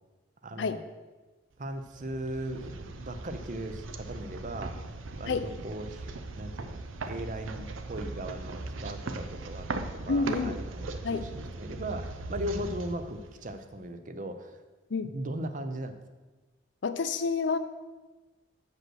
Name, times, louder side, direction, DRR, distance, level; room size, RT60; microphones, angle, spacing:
voice 1, 0.4-0.8 1.6-4.8 5.2-14.6 15.0-15.9, right 1 dB, 40° right, 8 dB, 0.6 m, -38 dB
sound 1, 1.7-13.8, right 2 dB, 80° right, 0.6 m, -39 dB
voice 2, 10.1-10.6 11.0-11.3 14.9-15.2 16.8-17.6, left 4 dB, 65° left, 11 dB, 0.5 m, -29 dB
7.7 x 5.3 x 6.2 m, 1.2 s
head